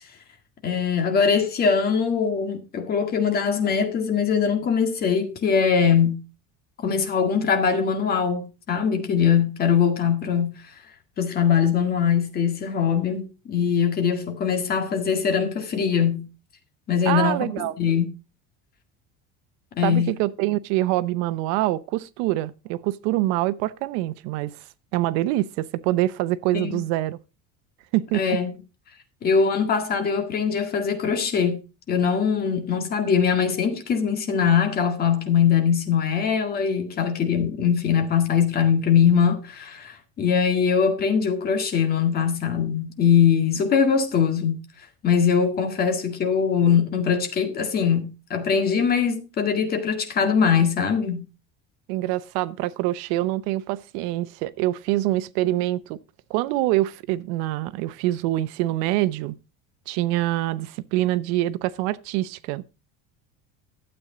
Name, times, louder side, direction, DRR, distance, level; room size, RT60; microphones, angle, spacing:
voice 1, 0.6-6.2 6.8-10.7 11.2-16.3 16.9-18.0 19.8-20.1 26.5-26.8 28.1-28.5 29.2-31.6 31.9-44.6 45.0-51.2, left 7 dB, 30° left, 1.9 m, -22 dB
voice 2, 17.1-17.7 19.8-24.6 24.9-27.2 27.9-28.2 51.9-56.0 56.3-59.4 59.9-62.6, right 16 dB, 85° right, 0.8 m, -25 dB
12.5 x 8.1 x 3.8 m
cardioid pair, 175°, 32 cm